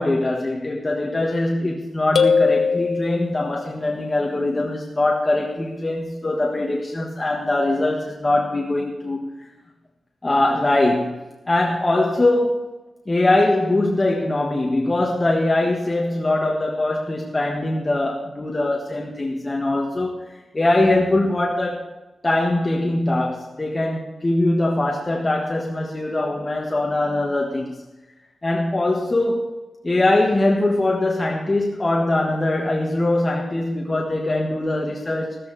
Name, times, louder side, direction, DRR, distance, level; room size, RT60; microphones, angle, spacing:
voice 1, 0.0-9.5 10.2-11.1 11.5-12.6 13.1-21.8 22.2-27.7 28.4-29.5 29.8-35.4, left 2 dB, 20° left, -1 dB, 1.4 m, -22 dB
sound 1, 2.2-3.7, left 5 dB, 80° left, 0.8 m, -20 dB
14.5 x 14.0 x 4.1 m, 1.1 s
wide cardioid pair, 165°, 0 cm